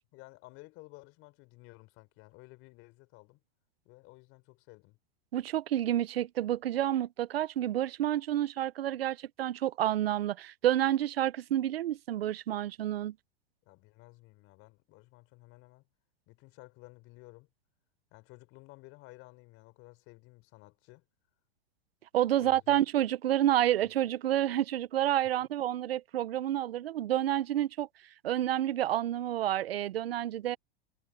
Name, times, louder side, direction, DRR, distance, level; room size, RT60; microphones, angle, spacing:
voice 1, 0.1-3.4 3.8-5.0 13.7-15.9 16.3-17.5 18.1-21.1 22.4-22.8 23.8-23.9, left 22 dB, 45° left, 4.0 m, -54 dB
voice 2, 5.3-13.1 22.1-27.9 28.2-30.6, right 12 dB, 90° right, 0.8 m, -29 dB
hypercardioid pair, 120°, 29 cm